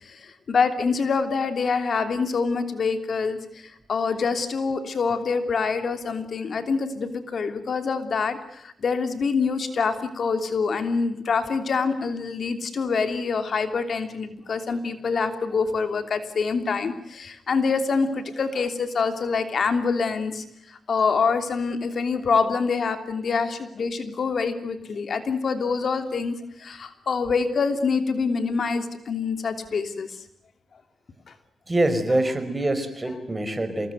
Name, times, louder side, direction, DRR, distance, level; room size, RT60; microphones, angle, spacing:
voice 1, 0.0-30.1, left 5 dB, 60° left, 8 dB, 3.1 m, -26 dB
voice 2, 31.7-33.9, right 1 dB, 25° right, 9 dB, 5.3 m, -24 dB
27.5 x 20.5 x 9.4 m, 0.76 s
cardioid pair, 75°, 0 cm